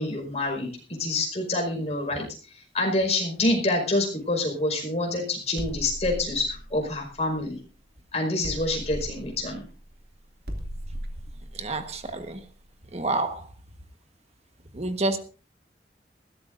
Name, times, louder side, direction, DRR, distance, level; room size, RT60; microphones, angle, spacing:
voice 1, 0.0-2.3 2.7-7.6 8.1-9.6, left 2 dB, 40° left, 5.1 m, -27 dB
sound 1, 5.6-7.9 8.4-13.1, equal, 60° right, 2.7 m, -38 dB
voice 2, 11.5-12.4 12.9-13.4 14.7-15.2, right 2 dB, 35° right, 1.4 m, -28 dB
20.5 x 16.5 x 2.6 m
head